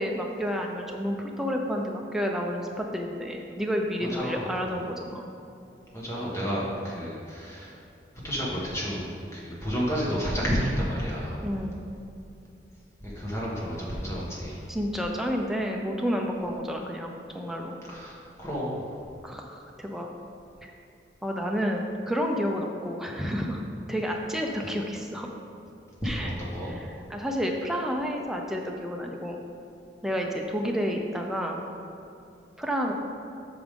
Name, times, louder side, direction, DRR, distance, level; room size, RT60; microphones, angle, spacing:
voice 1, 0.0-5.3 11.4-11.8 14.7-17.8 19.2-20.1 20.6-20.7 21.2-23.6 23.9-25.3 26.0-26.3 26.6-29.4 30.0-31.6 32.6-32.9, equal, ahead, 0 dB, 0.6 m, -30 dB
voice 2, 4.2-4.5 5.9-7.7 8.2-11.4 13.0-14.6 17.9-18.8 26.0-26.7, equal, 15° left, -5 dB, 1.5 m, -31 dB
8.5 x 6.1 x 3.7 m, 2.7 s
head